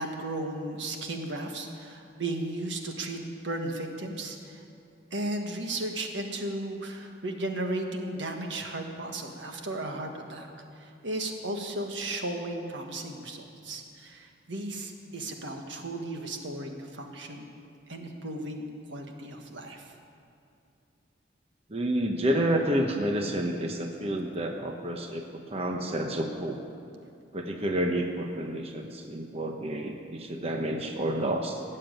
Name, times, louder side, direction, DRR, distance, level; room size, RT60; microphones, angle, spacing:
voice 1, 0.0-4.6 5.1-10.5 10.8-17.5 17.9-19.9, right 1 dB, 70° right, 3 dB, 1.6 m, -35 dB
voice 2, 21.7-26.6 27.3-31.6, right 1 dB, 35° right, 3 dB, 0.9 m, -29 dB
17.0 x 7.6 x 9.0 m, 2.5 s
head